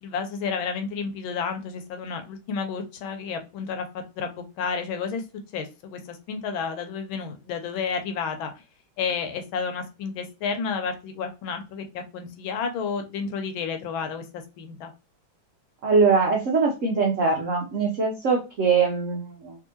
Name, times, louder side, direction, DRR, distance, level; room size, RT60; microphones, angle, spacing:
voice 1, 0.0-5.2 5.5-8.5 9.0-14.9, left 5 dB, 75° left, 6 dB, 1.4 m, -31 dB
voice 2, 15.8-19.6, right 4 dB, 90° right, 0 dB, 0.6 m, -22 dB
3.5 x 2.8 x 2.8 m, 0.29 s
omnidirectional pair, 2.3 m